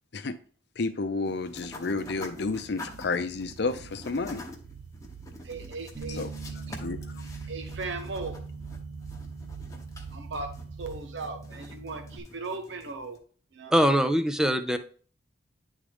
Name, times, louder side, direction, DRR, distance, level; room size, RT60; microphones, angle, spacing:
voice 1, 0.8-4.4 6.1-6.3 6.8-7.0, left 3 dB, 65° left, 10 dB, 0.6 m, -31 dB
sound 1, 1.2-13.2, left 2 dB, 20° left, 1.0 m, -47 dB
sound 2, 1.5-11.0, right 6 dB, 90° right, 0.5 m, -46 dB
voice 2, 5.4-6.2 6.7-6.8 7.5-8.4 10.1-10.5 10.8-13.2 13.5-14.0, right 3 dB, 70° right, 5 dB, 0.9 m, -37 dB
Bass guitar, 5.9-12.2, right 3 dB, 35° right, 1.1 m, -42 dB
voice 3, 13.7-14.8, equal, 5° right, 9 dB, 0.5 m, -22 dB
9.7 x 3.7 x 3.5 m, 0.43 s
head